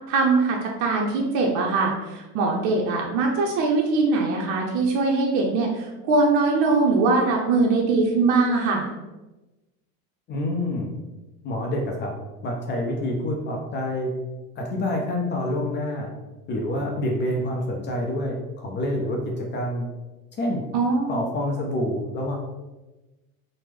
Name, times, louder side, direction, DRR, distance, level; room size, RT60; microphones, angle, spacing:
voice 1, 0.1-8.9 20.7-21.1, right 3 dB, 60° right, 0 dB, 0.6 m, -22 dB
voice 2, 10.3-10.9 11.4-12.1 12.4-14.1 14.6-16.1 16.5-19.9 20.4-20.6 21.1-22.4, left 1 dB, 35° left, 0 dB, 0.4 m, -27 dB
3.0 x 2.1 x 3.4 m, 1.1 s
supercardioid pair, 125°, 34 cm